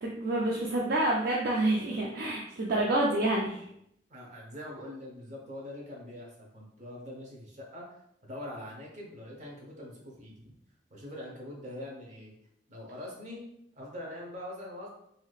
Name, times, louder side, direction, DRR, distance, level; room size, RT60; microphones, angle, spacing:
voice 1, 0.0-3.6, right 1 dB, 60° right, -2 dB, 0.4 m, -28 dB
voice 2, 4.1-8.0 8.2-10.5 10.9-12.3 12.7-13.4 13.8-14.9, left 1 dB, 45° right, -3 dB, 0.9 m, -43 dB
3.1 x 2.8 x 2.4 m, 0.76 s
head